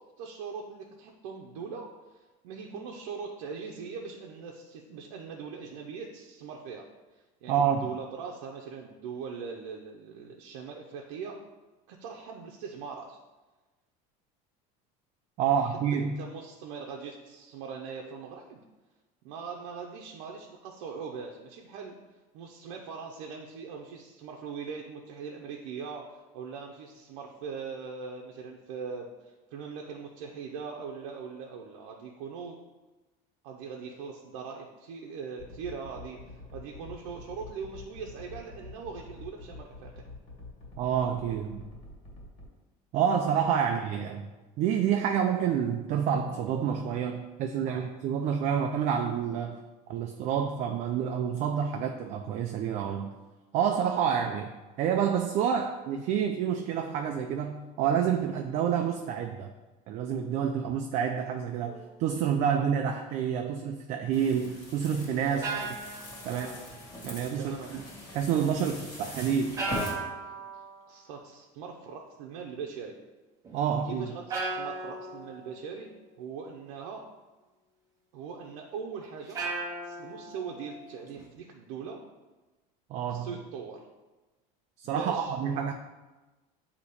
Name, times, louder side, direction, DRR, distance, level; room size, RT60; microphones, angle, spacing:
voice 1, 0.2-6.9 7.1-11.4 11.9-13.2 15.5-18.6 19.2-21.9 22.3-26.1 26.3-29.1 29.5-32.6 33.4-40.1 47.6-47.9 65.3-65.7 66.2-66.6 67.3-67.7 70.9-72.9 73.8-75.9 76.2-77.0 78.1-79.4 79.8-82.0 83.1-83.8 84.8-85.3, right 5 dB, 85° right, 0 dB, 0.7 m, -41 dB
voice 2, 7.5-7.9 15.4-16.2 40.8-41.6 42.9-44.3 44.6-49.6 49.9-53.1 53.5-59.5 59.9-65.4 66.2-66.5 67.0-67.8 68.1-69.5 73.5-74.2 82.9-83.3 84.8-85.7, right 8 dB, 45° right, 4 dB, 0.4 m, -28 dB
sound 1, 35.4-42.5, left 2 dB, 45° left, 1.8 m, -46 dB
sound 2, 61.6-62.0 65.1-67.0 69.5-70.9 73.4-73.6 74.3-75.9 79.3-81.2, right 3 dB, 20° right, 0.7 m, -37 dB
sound 3, 64.1-69.9, left 1 dB, 25° left, 1.5 m, -42 dB
8.1 x 2.9 x 4.1 m, 1.2 s
cardioid pair, 160°, 16 cm